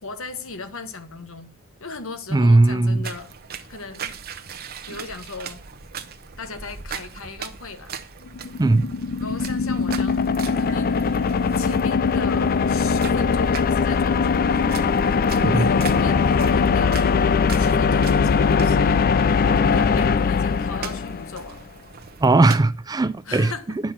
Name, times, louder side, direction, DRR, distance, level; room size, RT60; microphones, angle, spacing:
voice 1, 0.0-1.5 1.8-3.3 3.7-4.2 4.9-5.6 6.4-7.9 9.2-10.2 10.4-11.1 11.6-14.6 15.4-21.6 23.2-23.8, left 3 dB, 65° left, 1.4 m, -37 dB
voice 2, 2.3-3.0 8.6-8.8 15.4-15.7 22.2-23.5, right 2 dB, 20° right, 0.4 m, -18 dB
Footsteps in Rain, 3.0-22.6, right 7 dB, 45° right, 0.9 m, -40 dB
sound 1, 8.3-21.4, left 5 dB, 45° left, 0.4 m, -20 dB
10.0 x 6.0 x 5.9 m
head